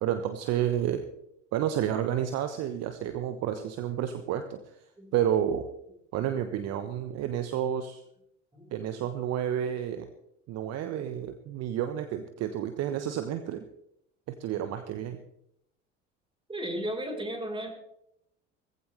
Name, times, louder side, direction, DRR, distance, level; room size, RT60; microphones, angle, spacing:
voice 1, 0.0-1.0 1.5-4.6 5.1-5.7 6.1-8.0 8.7-10.1 10.5-13.6 14.4-15.2, right 10 dB, 45° right, 9 dB, 1.2 m, -30 dB
voice 2, 16.5-17.7, equal, 15° right, 2 dB, 4.4 m, -34 dB
20.0 x 15.5 x 3.3 m, 0.76 s
figure-of-eight pair, 65°, 36 cm